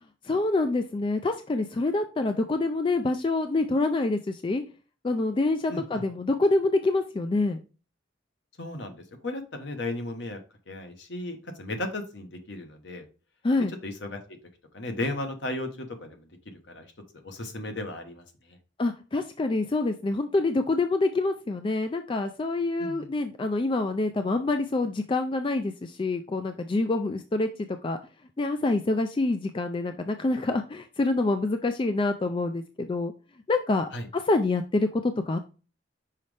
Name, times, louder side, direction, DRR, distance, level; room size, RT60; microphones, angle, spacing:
voice 1, 0.2-4.6 5.0-7.6 13.4-13.7 18.8-28.0 28.4-33.1 33.5-33.9 34.1-35.4, left 2 dB, 25° left, 7 dB, 0.3 m, -26 dB
voice 2, 5.7-6.0 8.6-10.4 10.7-13.0 13.7-14.4 14.7-18.6 22.8-23.1 33.9-34.1, left 2 dB, 60° left, 6 dB, 1.1 m, -35 dB
5.6 x 5.2 x 3.3 m, 0.34 s
head